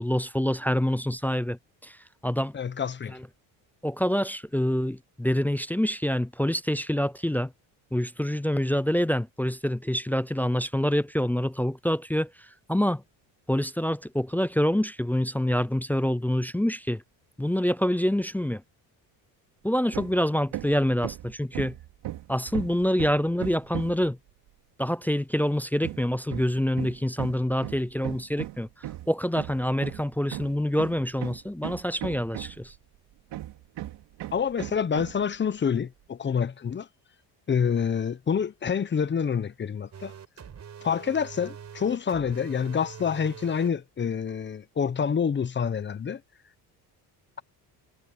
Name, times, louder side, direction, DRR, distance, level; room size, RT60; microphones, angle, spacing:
voice 1, 0.0-1.6 1.8-2.0 2.2-2.5 3.1-3.3 3.8-7.5 7.9-12.3 12.7-13.0 13.5-17.0 17.4-18.6 19.6-21.7 22.3-24.2 24.8-28.7 29.1-32.7, equal, 5° left, 0.5 m, -26 dB
voice 2, 2.5-3.2 34.3-36.9 37.5-40.1 40.8-46.2, left 7 dB, 25° left, 0.9 m, -27 dB
Hammer, 19.9-20.2 20.5-24.1 25.8-32.8 33.3-35.2, right 14 dB, 70° right, 3.4 m, -37 dB
sound 1, 39.9-43.7, right 7 dB, 40° right, 4.8 m, -44 dB
cardioid pair, 110°, 42 cm